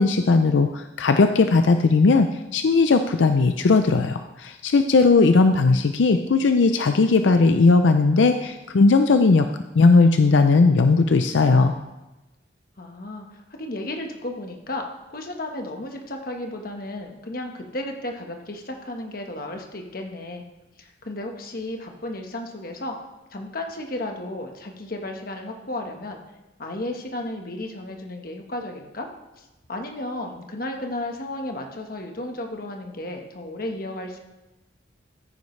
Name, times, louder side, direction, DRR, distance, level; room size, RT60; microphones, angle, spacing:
voice 1, 0.0-9.5 9.8-11.7, left 3 dB, 85° left, 8 dB, 0.5 m, -18 dB
voice 2, 12.8-20.4 20.8-23.0 23.3-26.2 26.6-29.1 29.4-34.2, left 1 dB, 50° left, 3 dB, 1.3 m, -33 dB
14.0 x 9.5 x 3.2 m, 1.0 s
head